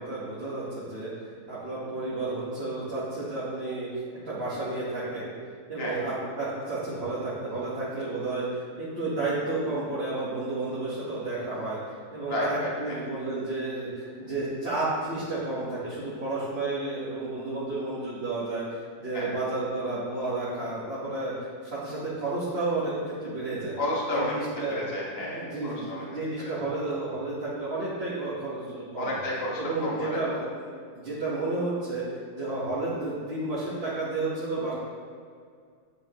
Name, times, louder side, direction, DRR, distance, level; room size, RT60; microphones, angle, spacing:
voice 1, 0.0-5.3 5.7-11.8 12.1-23.8 24.1-24.8 25.2-29.2 29.6-32.0 32.4-34.7, right 2 dB, 40° right, -10 dB, 1.6 m, -31 dB
voice 2, 12.3-13.0 19.1-19.3 23.8-26.0 26.4-26.5 29.0-30.2, left 1 dB, 40° left, -5 dB, 1.7 m, -31 dB
9.0 x 7.7 x 3.0 m, 2.1 s
omnidirectional pair, 1.7 m